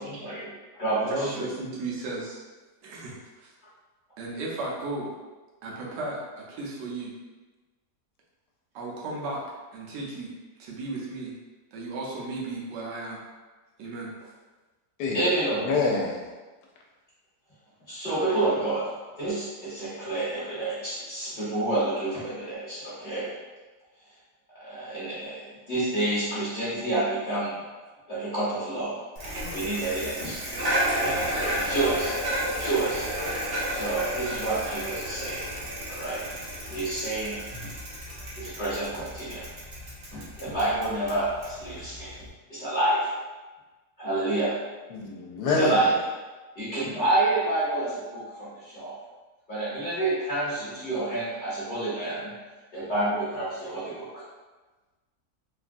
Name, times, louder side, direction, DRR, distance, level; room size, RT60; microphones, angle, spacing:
voice 1, 0.2-1.4 15.1-15.6 17.9-18.9 19.2-23.3 24.6-25.4 25.7-27.6 28.1-29.1 29.5-30.4 30.6-32.1 32.6-33.1 33.7-35.4 35.9-36.2 36.7-37.4 38.4-39.4 40.1-42.2 42.5-43.1 44.0-44.5 45.4-45.9 46.5-48.9 49.5-52.3 52.7-54.2, right 2 dB, 30° left, -11 dB, 1.1 m, -29 dB
voice 2, 1.0-2.4 2.8-3.5 4.2-5.1 5.6-7.1 8.7-9.4 9.7-10.3 10.6-11.3 11.7-13.2 13.8-14.1, right 2 dB, 85° right, -3 dB, 1.3 m, -35 dB
voice 3, 15.6-16.2 29.4-29.6 44.9-45.8, left 3 dB, 75° left, -1 dB, 1.1 m, -26 dB
Bicycle, 29.2-42.3, equal, 50° right, 0.9 m, -32 dB
3.3 x 2.2 x 2.5 m, 1.3 s
omnidirectional pair, 1.8 m